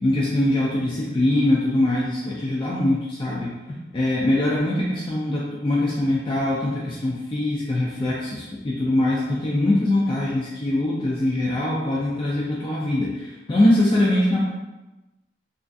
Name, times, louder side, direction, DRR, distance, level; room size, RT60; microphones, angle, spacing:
voice 1, 0.0-3.5 3.9-14.4, left 1 dB, 30° left, -5 dB, 0.4 m, -22 dB
3.0 x 2.5 x 2.5 m, 1.1 s
head